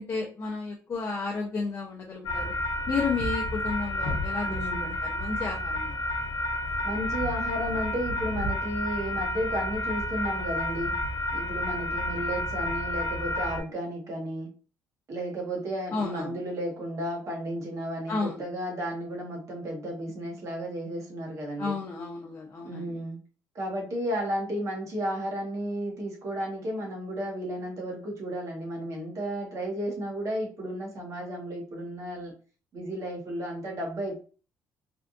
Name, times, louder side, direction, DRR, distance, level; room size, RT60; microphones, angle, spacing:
voice 1, 0.0-2.5 2.9-6.0 15.9-16.4 18.1-18.4 21.6-23.0, left 4 dB, 40° left, -2 dB, 0.6 m, -32 dB
sound 1, 2.3-13.6, left 1 dB, 70° left, 0.8 m, -30 dB
voice 2, 4.4-4.9 6.8-11.0 11.3-14.5 15.1-21.8 22.6-23.2 23.5-32.3 32.7-34.2, equal, 50° right, -1 dB, 1.4 m, -33 dB
3.4 x 2.5 x 2.5 m, 0.37 s
cardioid pair, 120°, 7 cm